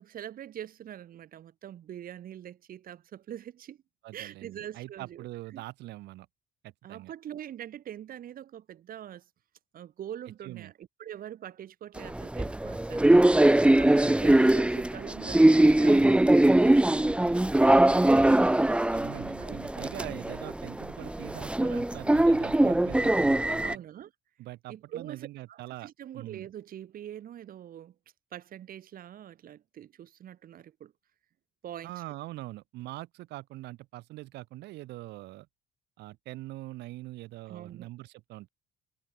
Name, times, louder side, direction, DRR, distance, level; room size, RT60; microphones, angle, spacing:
voice 1, 0.0-3.8 4.1-5.2 5.5-5.6 6.8-9.3 9.7-18.3 19.4-19.6 23.6-24.1 24.7-28.0 28.3-30.9 31.6-31.9 37.5-37.9, right 11 dB, 60° right, 7.1 m, -43 dB
voice 2, 4.0-6.3 6.6-7.1 10.4-10.7 18.9-23.8 24.4-26.5 31.8-35.5 36.0-38.5, right 17 dB, 80° right, 2.9 m, -43 dB
sound 1, 12.0-23.8, right 1 dB, 5° right, 1.1 m, -22 dB
cardioid pair, 110°, 17 cm